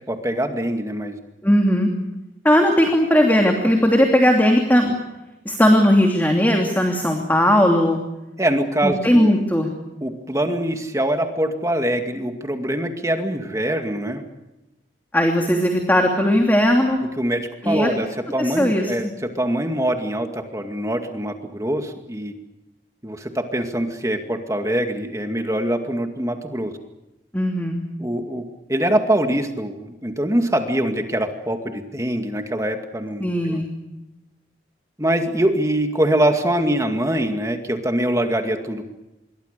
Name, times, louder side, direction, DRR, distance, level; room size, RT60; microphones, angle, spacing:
voice 1, 0.1-1.2 8.4-9.3 10.0-14.2 17.2-22.3 23.0-26.7 28.0-33.6 35.0-38.9, right 1 dB, 15° right, 5 dB, 2.2 m, -23 dB
voice 2, 1.4-1.9 2.4-4.9 5.4-8.0 8.8-9.7 15.1-17.0 17.6-17.9 18.4-18.9 27.3-27.8 33.2-33.7, equal, 10° left, 2 dB, 2.9 m, -17 dB
27.5 x 23.0 x 6.8 m, 0.97 s
head